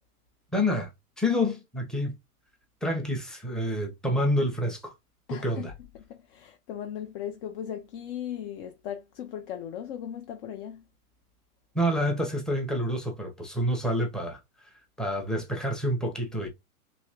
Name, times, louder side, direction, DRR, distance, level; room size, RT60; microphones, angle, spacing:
voice 1, 0.5-0.9 1.2-2.1 2.8-4.9 5.3-5.7 11.7-16.5, left 1 dB, ahead, 0.6 m, -28 dB
voice 2, 5.3-5.7 5.9-10.8, left 10 dB, 40° left, 0.4 m, -37 dB
3.1 x 2.8 x 2.7 m
hypercardioid pair, 110°, 45 cm